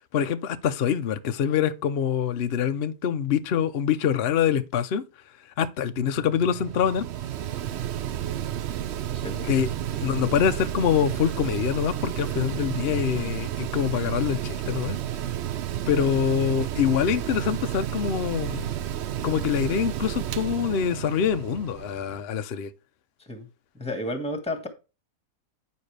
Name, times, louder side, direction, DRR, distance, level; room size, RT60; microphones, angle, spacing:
voice 1, 0.1-5.0 5.6-7.0 9.5-15.0 15.9-18.7 19.2-22.7, left 8 dB, 65° left, 0.6 m, -25 dB
Mechanical fan, 5.9-22.2, right 11 dB, 90° right, 0.5 m, -31 dB
voice 2, 9.1-9.5 23.3-23.5 23.7-24.7, left 1 dB, 5° left, 1.4 m, -32 dB
9.3 x 6.9 x 3.3 m
omnidirectional pair, 1.8 m